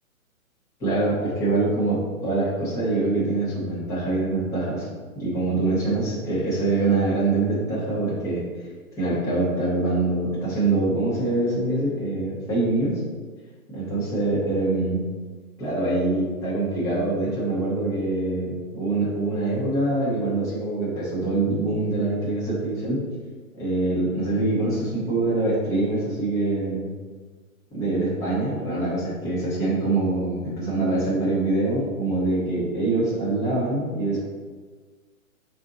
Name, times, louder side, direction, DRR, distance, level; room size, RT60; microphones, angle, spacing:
voice 1, 0.8-4.8 5.1-8.4 9.0-12.9 13.7-15.0 15.6-23.0 23.6-26.9 27.7-34.2, right 2 dB, 5° left, -9 dB, 1.0 m, -24 dB
4.2 x 2.7 x 4.0 m, 1.5 s
hypercardioid pair, 150°, 43 cm